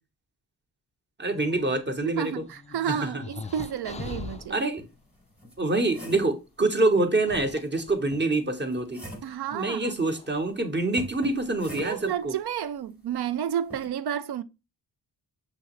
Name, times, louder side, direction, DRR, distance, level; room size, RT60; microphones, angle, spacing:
voice 1, 1.2-2.4 2.9-3.2 4.5-4.8 5.6-9.0 9.5-12.3, right 2 dB, 25° right, 1.0 m, -26 dB
sound 1, 1.4-4.5 5.9-6.0 7.0-8.8 9.9-10.4 11.4-11.5 11.8-12.2, left 4 dB, 20° left, 0.3 m, -42 dB
voice 2, 2.0-4.6 9.2-9.9 11.7-14.4, right 9 dB, 60° right, 0.5 m, -31 dB
sound 2, 4.2-4.3 4.8-6.4 8.1-9.4 11.0-12.2 13.7-13.9, equal, 5° right, 1.2 m, -43 dB
6.1 x 2.9 x 3.0 m
cardioid pair, 80°, 43 cm